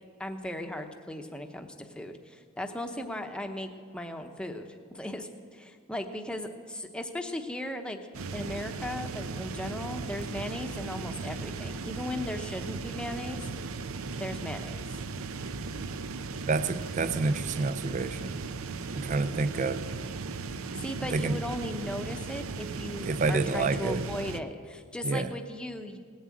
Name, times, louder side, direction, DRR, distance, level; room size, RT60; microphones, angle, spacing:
voice 1, 0.2-4.7 4.9-8.0 8.3-13.5 14.2-15.0 20.7-26.0, left 1 dB, 5° left, 5 dB, 0.8 m, -37 dB
auto int heat blast max, 8.1-24.4, right 4 dB, 85° right, 0.6 m, -37 dB
voice 2, 16.5-18.4 18.9-19.8 21.1-21.4 23.0-24.0 25.0-25.3, right 3 dB, 35° right, 12 dB, 0.4 m, -28 dB
18.5 x 7.4 x 8.5 m, 2.1 s
head